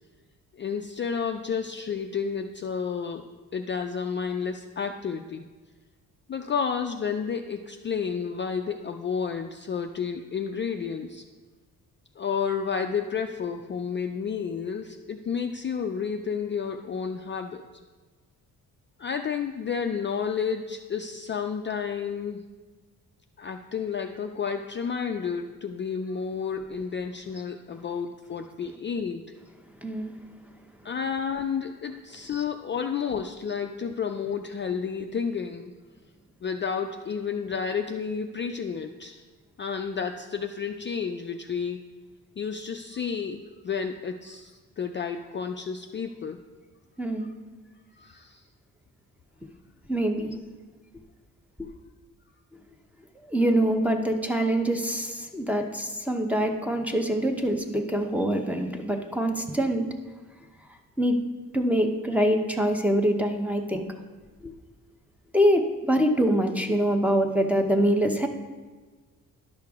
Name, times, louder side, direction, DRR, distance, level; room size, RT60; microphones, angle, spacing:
voice 1, 0.5-3.2 3.5-5.4 6.3-11.2 12.2-17.6 19.0-22.4 23.4-29.2 30.8-35.7 36.4-39.2 39.6-41.8 42.4-46.4 47.9-48.4, left 6 dB, 35° left, 5 dB, 0.4 m, -31 dB
voice 2, 29.8-30.1 32.3-32.4 47.0-47.3 49.9-50.4 51.6-51.7 53.3-59.9 61.0-61.2 61.5-63.9 64.4-64.5 65.3-68.3, equal, 5° right, 4 dB, 0.7 m, -24 dB
11.0 x 6.6 x 3.5 m, 1.4 s
wide cardioid pair, 145°, 35 cm